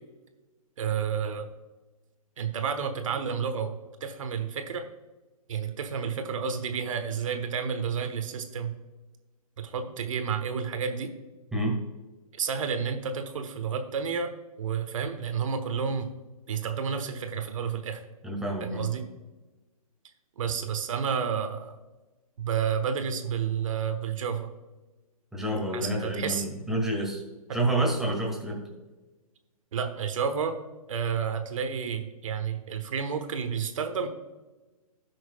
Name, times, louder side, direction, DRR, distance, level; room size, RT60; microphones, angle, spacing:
voice 1, 0.8-1.5 2.4-3.7 4.0-4.9 5.5-8.7 9.6-11.1 12.3-16.1 16.5-18.0 18.6-19.0 20.4-21.7 22.4-24.5 25.7-26.5 29.7-30.6 30.9-34.1, right 6 dB, 60° right, 8 dB, 1.2 m, -30 dB
voice 2, 11.5-11.8 18.2-18.9 25.3-27.2 27.5-28.6, right 1 dB, ahead, -1 dB, 2.0 m, -28 dB
16.0 x 6.3 x 2.3 m, 1.2 s
figure-of-eight pair, 130°, 19 cm